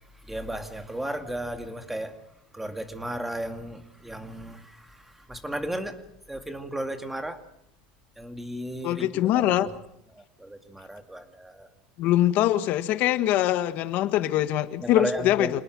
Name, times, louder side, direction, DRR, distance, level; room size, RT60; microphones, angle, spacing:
voice 1, 0.1-2.2 2.5-6.0 6.3-7.4 8.2-9.7 10.1-11.7 14.8-15.6, right 1 dB, 5° right, 7 dB, 2.2 m, -35 dB
voice 2, 8.8-9.7 12.0-15.6, left 13 dB, 50° left, 11 dB, 1.6 m, -23 dB
27.5 x 19.5 x 6.2 m, 0.77 s
supercardioid pair, 145°, 4 cm